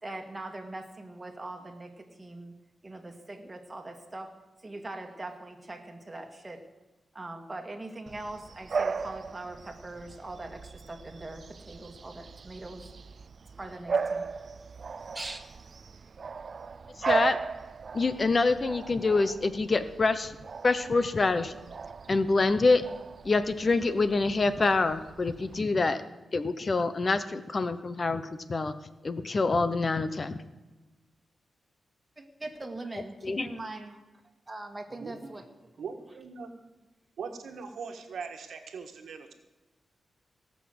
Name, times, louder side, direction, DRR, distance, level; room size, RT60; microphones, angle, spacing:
voice 1, 0.0-2.5 2.8-6.7 7.1-12.9 13.6-14.3 15.1-15.4 32.2-34.0 34.5-35.9, right 2 dB, 20° right, 3 dB, 1.9 m, -42 dB
Bark / Bird vocalization bird call bird song, 8.1-25.6, right 5 dB, 50° right, 0.4 m, -37 dB
voice 2, 17.0-17.4 17.9-20.4 20.6-21.5 22.1-22.8 23.2-26.0 26.3-28.2 28.5-28.7 29.0-30.4 33.2-33.5, left 3 dB, 40° left, 12 dB, 0.8 m, -26 dB
voice 3, 35.8-36.5 37.2-39.3, right 5 dB, 80° right, 6 dB, 1.5 m, -40 dB
18.0 x 6.3 x 7.8 m, 1.1 s
wide cardioid pair, 100°, 0 cm